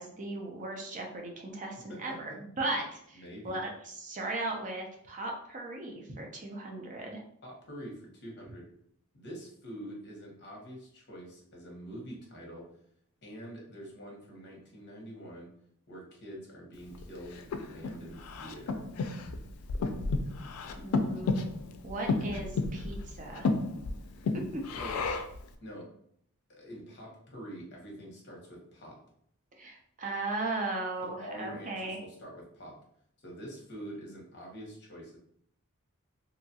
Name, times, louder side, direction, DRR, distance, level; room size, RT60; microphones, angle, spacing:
voice 1, 0.0-7.2 20.7-21.4 21.8-23.5 24.5-24.6 29.6-32.0, right 2 dB, 35° right, 1 dB, 0.5 m, -37 dB
voice 2, 3.1-3.6 7.4-8.7 9.1-12.7 13.2-15.5 15.9-18.8 24.8-25.0 25.6-25.9 26.5-29.0 31.0-32.8 33.2-35.2, equal, 55° left, -1 dB, 0.9 m, -45 dB
Breathing, 16.9-25.4, left 3 dB, 85° left, 0.3 m, -33 dB
2.7 x 2.3 x 2.7 m, 0.69 s
head